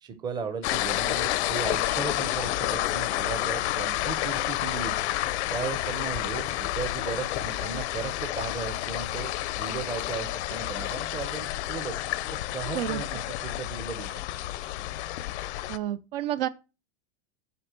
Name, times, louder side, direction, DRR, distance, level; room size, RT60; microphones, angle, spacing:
voice 1, 0.0-5.0 5.5-11.9 12.3-14.2, right 6 dB, 10° right, 0.7 m, -36 dB
sound 1, 0.6-15.8, left 15 dB, 65° left, 0.7 m, -30 dB
Microwave oven, 1.3-1.8 2.1-4.3 4.7-15.7, left 8 dB, 20° left, 0.6 m, -51 dB
voice 2, 15.7-16.5, right 12 dB, 50° right, 0.7 m, -29 dB
8.2 x 5.3 x 7.4 m
supercardioid pair, 180°, 36 cm